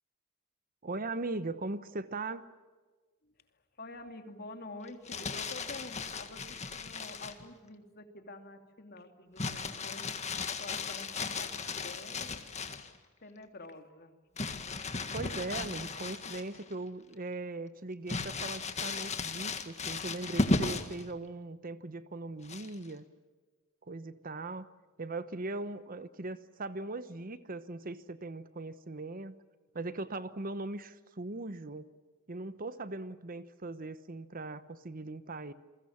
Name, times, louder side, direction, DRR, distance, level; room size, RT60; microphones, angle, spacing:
voice 1, 0.8-2.5 15.1-23.1 23.8-24.7 25.0-29.4 29.7-31.9 32.3-35.5, right 2 dB, 45° right, 13 dB, 1.0 m, -39 dB
voice 2, 3.2-12.4 13.2-14.1, left 2 dB, 50° left, 6 dB, 2.7 m, -48 dB
Crumpling crinkling, 4.9-7.4 9.4-12.9 14.4-16.7 17.1-17.2 18.1-21.0 22.4-22.9, left 3 dB, 35° left, 1.8 m, -35 dB
28.5 x 22.5 x 7.3 m, 1.3 s
head